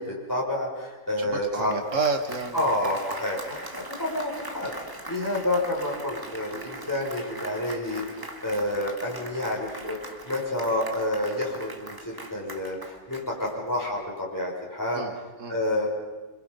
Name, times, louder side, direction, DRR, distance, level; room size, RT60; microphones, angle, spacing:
voice 1, 0.0-1.8 2.5-15.0 15.5-15.9, left 1 dB, 10° left, -4 dB, 6.7 m, -29 dB
voice 2, 1.2-2.6 14.9-15.6, right 4 dB, 50° right, 5 dB, 2.2 m, -30 dB
Applause, 1.5-14.0, right 1 dB, 15° right, 1.7 m, -41 dB
27.0 x 26.5 x 5.7 m, 1.2 s
omnidirectional pair, 1.7 m